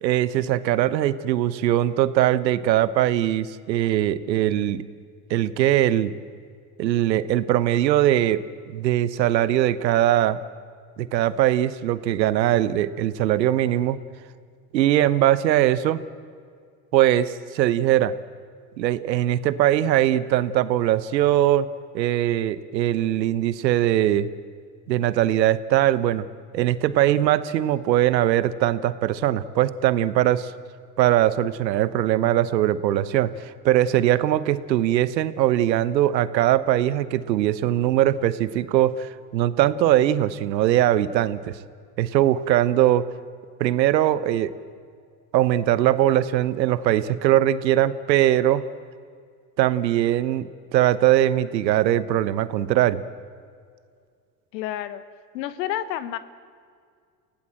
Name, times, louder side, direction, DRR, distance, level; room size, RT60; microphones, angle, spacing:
voice 1, 0.0-4.8 5.3-6.1 6.8-10.4 11.0-14.0 14.7-16.0 16.9-18.1 18.8-21.7 21.9-24.3 24.9-26.3 26.5-30.5 31.0-41.6 42.0-43.1 43.6-44.5 45.3-48.6 49.6-53.0, right 12 dB, 85° right, 16 dB, 1.1 m, -21 dB
voice 2, 54.5-55.0 55.3-56.2, left 12 dB, 80° left, 14 dB, 1.4 m, -29 dB
30.0 x 17.5 x 7.7 m, 2.1 s
hypercardioid pair, 75°, 50 cm